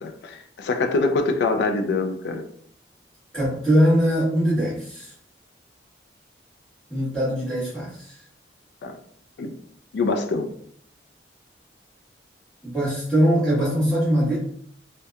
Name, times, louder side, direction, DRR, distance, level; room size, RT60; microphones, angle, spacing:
voice 1, 0.0-2.4 8.8-9.0 9.4-9.5 9.9-10.5, left 3 dB, 65° left, 5 dB, 0.3 m, -24 dB
voice 2, 3.3-5.1 6.9-8.1 12.6-14.4, equal, 5° left, -10 dB, 1.2 m, -21 dB
2.7 x 2.1 x 2.2 m, 0.64 s
head